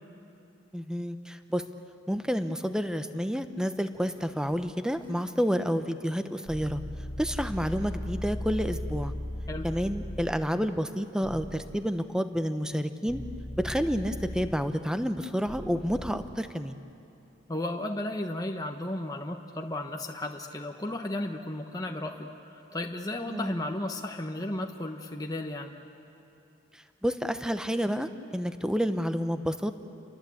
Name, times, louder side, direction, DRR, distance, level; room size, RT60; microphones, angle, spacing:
voice 1, 0.7-1.7 2.1-6.8 7.2-9.1 9.6-13.2 13.6-16.8 23.3-23.5 26.7-29.7, equal, 5° right, 9 dB, 0.9 m, -29 dB
Drawer open or close, 3.5-5.8 6.3-8.3, equal, 25° right, 7.1 m, -57 dB
sound 1, 6.5-10.3 11.2-11.6 13.1-14.5 15.5-16.1, left 1 dB, 40° left, 1.9 m, -37 dB
voice 2, 17.5-25.7, left 1 dB, 20° left, 2 dB, 1.1 m, -34 dB
30.0 x 23.5 x 8.6 m, 2.8 s
head